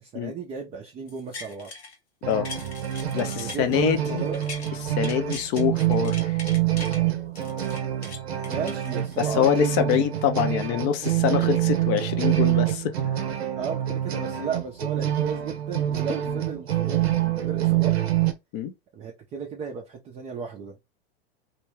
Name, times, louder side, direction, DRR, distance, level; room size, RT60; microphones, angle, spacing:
voice 1, 0.0-1.7 3.3-4.4 8.5-9.9 11.4-11.6 13.5-18.0 18.9-20.7, right 6 dB, 20° right, 0.4 m, -34 dB
sound 1, 1.1-2.0 2.3-4.7 5.0-7.0 7.4-9.4 9.8-9.9, left 3 dB, 80° left, 0.8 m, -41 dB
sound 2, 2.2-18.3, right 13 dB, 75° right, 0.6 m, -26 dB
voice 2, 3.1-4.2 4.8-6.4 9.2-13.0 18.5-18.7, left 9 dB, 40° left, 0.5 m, -25 dB
2.3 x 2.2 x 3.1 m
hypercardioid pair, 95°, 32 cm